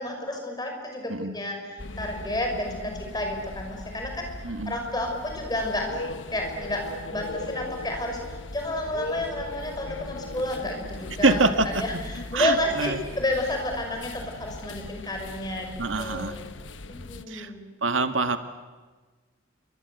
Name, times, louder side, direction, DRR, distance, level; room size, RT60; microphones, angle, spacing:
voice 1, 0.0-4.3 4.7-6.0 6.3-11.4 11.8-16.4 16.9-17.7, left 1 dB, 20° left, 3 dB, 5.8 m, -31 dB
sound 1, 1.8-17.2, left 2 dB, 80° left, 1.2 m, -39 dB
voice 2, 11.2-11.8 12.3-13.0 15.8-16.4 17.3-17.5 17.8-18.4, right 3 dB, 85° right, 8 dB, 1.8 m, -24 dB
28.5 x 24.5 x 8.1 m, 1.3 s
head